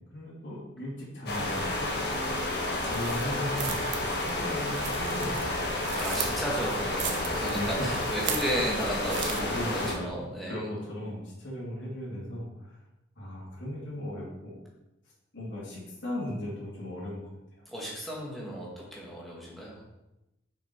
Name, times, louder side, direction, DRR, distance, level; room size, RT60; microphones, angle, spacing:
voice 1, 0.1-1.9 2.4-5.6 6.2-6.4 7.5-7.7 9.5-12.8 13.2-14.6 15.3-17.3 17.6-17.7, left 1 dB, 80° left, -7 dB, 2.9 m, -37 dB
sound 1, 1.3-9.9, left 1 dB, 60° left, 1.5 m, -31 dB
sound 2, 2.9-9.4, right 8 dB, 85° right, 0.9 m, -38 dB
voice 2, 6.0-9.5 9.9-10.6 17.7-19.8, equal, ahead, -5 dB, 1.9 m, -34 dB
6.7 x 5.8 x 4.7 m, 0.96 s
head